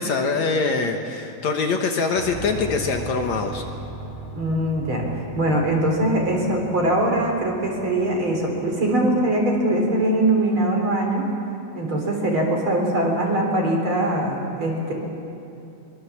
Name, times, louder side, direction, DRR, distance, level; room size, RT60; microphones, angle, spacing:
voice 1, 0.0-3.6, left 4 dB, 60° left, 4 dB, 2.2 m, -24 dB
Piano, 2.1-10.2, right 2 dB, 65° right, 9.5 m, -38 dB
voice 2, 4.4-11.3 11.7-14.9, right 1 dB, 35° right, 0 dB, 4.2 m, -22 dB
24.0 x 23.5 x 7.4 m, 2.9 s
omnidirectional pair, 4.2 m